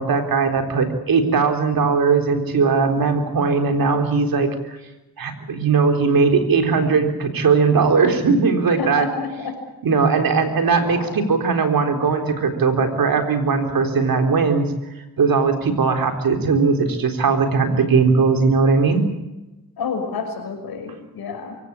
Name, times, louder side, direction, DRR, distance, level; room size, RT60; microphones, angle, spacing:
voice 1, 0.0-4.8 5.2-9.1 9.8-14.7 15.2-19.0, right 4 dB, 70° right, 6 dB, 3.9 m, -19 dB
voice 2, 8.8-9.6 10.8-11.2 19.8-21.6, left 5 dB, 85° left, 5 dB, 6.0 m, -29 dB
24.5 x 17.0 x 8.7 m, 1.0 s
cardioid pair, 70°, 36 cm